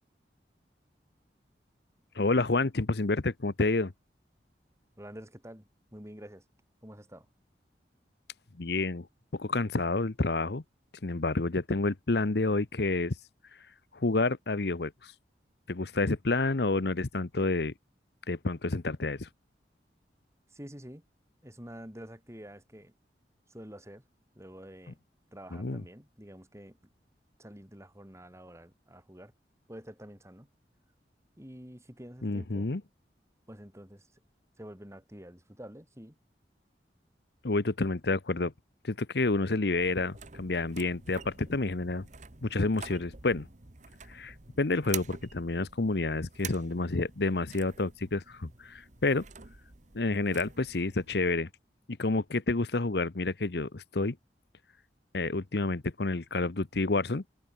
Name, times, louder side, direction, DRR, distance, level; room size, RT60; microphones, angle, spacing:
voice 1, 2.1-3.9 8.6-9.1 9.3-10.6 11.0-13.1 13.9-15.1 15.7-17.7 18.3-19.3 25.5-25.8 32.2-32.8 37.4-38.5 38.8-42.1 42.4-43.5 44.1-49.2 49.9-51.5 51.9-54.2 55.1-57.2, left 3 dB, 65° left, 1.0 m, -29 dB
voice 2, 5.0-6.4 6.8-7.3 20.5-21.0 21.4-22.9 23.5-24.0 24.4-25.0 25.3-26.8 27.4-29.3 29.7-30.5 31.4-32.7 33.5-34.1 34.6-36.2, equal, 15° right, 5.8 m, -48 dB
sound 1, 39.7-51.3, right 7 dB, 45° right, 1.5 m, -47 dB
open air
head